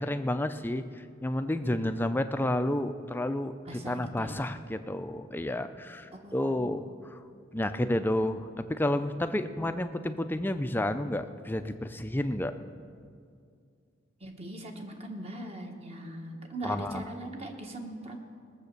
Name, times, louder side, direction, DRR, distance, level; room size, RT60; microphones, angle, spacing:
voice 1, 0.0-7.2 7.5-12.5 16.6-17.1, left 1 dB, 10° left, 9 dB, 0.5 m, -31 dB
voice 2, 3.6-4.4 6.1-6.9 14.2-18.2, right 1 dB, 35° right, 3 dB, 1.4 m, -41 dB
19.0 x 7.2 x 6.7 m, 2.2 s
head